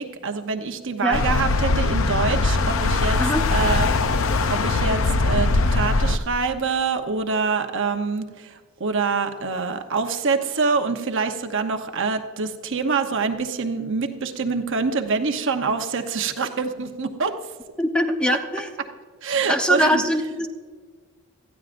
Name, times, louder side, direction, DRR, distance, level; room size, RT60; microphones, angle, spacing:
voice 1, 0.0-17.4 19.2-20.0, right 4 dB, 55° right, 6 dB, 0.9 m, -25 dB
sound 1, 1.1-6.2, left 3 dB, 60° left, 0.6 m, -21 dB
voice 2, 17.8-18.7 19.5-20.5, equal, 5° left, 4 dB, 0.8 m, -22 dB
19.0 x 14.0 x 2.6 m, 1.5 s
head